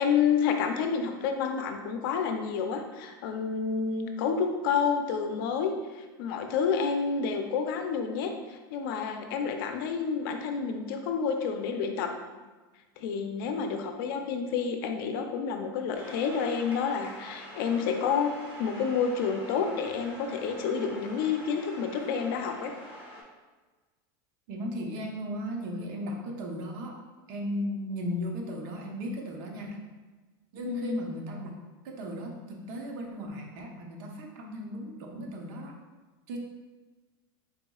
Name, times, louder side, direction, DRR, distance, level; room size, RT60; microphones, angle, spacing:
voice 1, 0.0-5.7 6.2-12.1 13.0-18.3 18.6-22.7 30.7-31.0, left 6 dB, 65° left, 5 dB, 0.5 m, -29 dB
sound 1, 15.9-23.2, equal, 10° right, 1.0 m, -45 dB
voice 2, 24.5-27.0 27.3-29.8 30.5-31.6 31.8-35.8 36.3-36.4, equal, 65° right, 1 dB, 0.8 m, -36 dB
4.1 x 3.9 x 2.3 m, 1.3 s
supercardioid pair, 135°, 12 cm